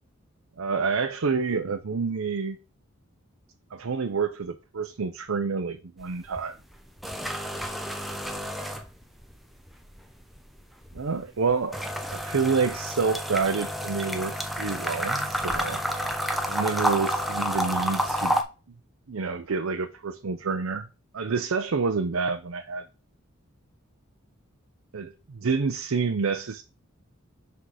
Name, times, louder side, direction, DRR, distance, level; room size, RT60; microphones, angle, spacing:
voice 1, 0.6-2.6 3.7-6.6 10.9-11.8 12.1-15.8 16.5-18.4 19.1-20.9 21.1-22.8 24.9-26.6, right 5 dB, 85° right, 0.6 m, -28 dB
sound 1, 6.0-6.4 6.7-9.4 9.7-18.4, equal, ahead, 0.8 m, -30 dB
6.2 x 5.7 x 4.9 m
head